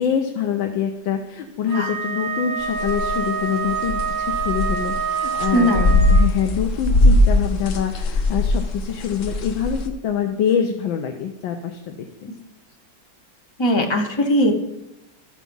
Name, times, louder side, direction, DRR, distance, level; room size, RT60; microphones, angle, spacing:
voice 1, 0.0-5.7 6.1-12.0 12.2-12.3, left 8 dB, 80° left, 4 dB, 1.5 m, -25 dB
Wind instrument woodwind instrument, 1.7-6.4, right 6 dB, 50° right, 1.9 m, -26 dB
sound 1, 2.7-3.2 3.7-5.0 5.3-9.9, left 1 dB, 55° left, 0.9 m, -19 dB
voice 2, 5.5-6.0 13.6-14.5, equal, 25° left, 1 dB, 0.6 m, -19 dB
13.0 x 4.9 x 5.4 m, 0.94 s
omnidirectional pair, 2.1 m